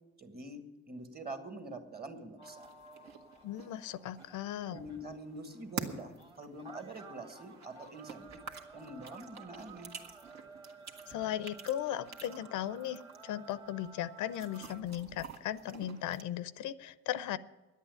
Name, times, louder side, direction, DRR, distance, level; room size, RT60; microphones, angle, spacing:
voice 1, 0.2-2.7 4.7-8.4 8.7-9.9, right 2 dB, 30° right, 7 dB, 2.1 m, -45 dB
sound 1, 2.4-14.8, right 3 dB, 15° right, 1.2 m, -54 dB
sound 2, 2.4-16.2, right 6 dB, 65° right, 1.6 m, -49 dB
voice 2, 3.4-4.8 11.1-17.4, left 11 dB, 90° left, 16 dB, 0.6 m, -37 dB
11.0 x 8.3 x 9.9 m, 1.2 s
cardioid pair, 90°, 30 cm